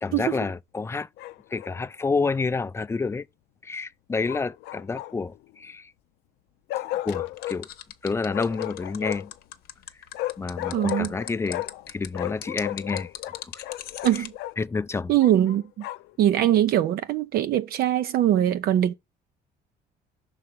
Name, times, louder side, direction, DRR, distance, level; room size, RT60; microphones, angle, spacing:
voice 1, 0.0-1.1 1.5-3.3 3.6-5.9 7.0-7.7 8.0-9.3 10.4-13.1 13.4-13.6 14.1-14.2 14.6-15.1, left 4 dB, 15° left, 0.4 m, -29 dB
Bark, 1.2-1.8 4.3-5.4 6.7-7.6 8.3-9.4 10.1-11.9 12.1-14.6 15.2-16.2, left 16 dB, 85° left, 0.5 m, -34 dB
sound 1, 7.4-14.3, left 11 dB, 65° left, 0.8 m, -39 dB
voice 2, 10.7-11.1 14.0-14.3 15.1-15.9 16.2-18.9, right 12 dB, 65° right, 0.5 m, -22 dB
5.7 x 4.0 x 5.0 m
cardioid pair, 110°, 17 cm